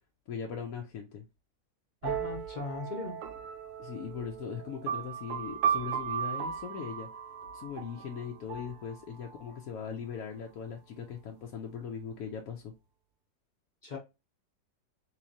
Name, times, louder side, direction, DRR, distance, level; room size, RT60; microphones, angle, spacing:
voice 1, 0.3-1.2 3.8-7.1 7.5-12.7, left 7 dB, 65° left, 0.9 m, -39 dB
voice 2, 2.0-3.2 13.8-14.0, left 3 dB, 40° left, 0.7 m, -38 dB
sound 1, 2.0-9.6, right 8 dB, 65° right, 0.8 m, -36 dB
3.8 x 3.0 x 2.6 m
omnidirectional pair, 1.9 m